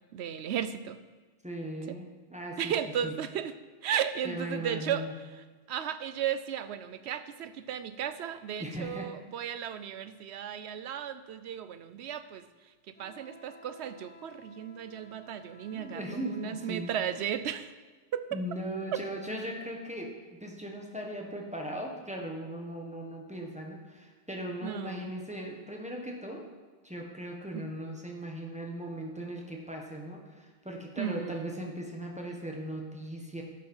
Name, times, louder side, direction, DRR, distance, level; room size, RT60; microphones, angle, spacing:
voice 1, 0.1-1.0 2.6-3.5 3.8-5.1 5.7-12.4 13.0-17.7 18.1-18.4 18.9-19.0 24.6-25.1 27.5-27.6 31.0-31.5, right 9 dB, 80° right, 12 dB, 0.9 m, -35 dB
voice 2, 1.4-2.7 3.0-3.1 4.2-5.1 8.6-9.1 15.7-16.9 18.3-26.4 26.8-33.4, right 1 dB, 5° right, 0 dB, 1.4 m, -38 dB
Wind instrument woodwind instrument, 12.9-17.4, right 1 dB, 10° left, 1.0 m, -54 dB
11.5 x 7.5 x 5.5 m, 1.3 s
omnidirectional pair, 1.1 m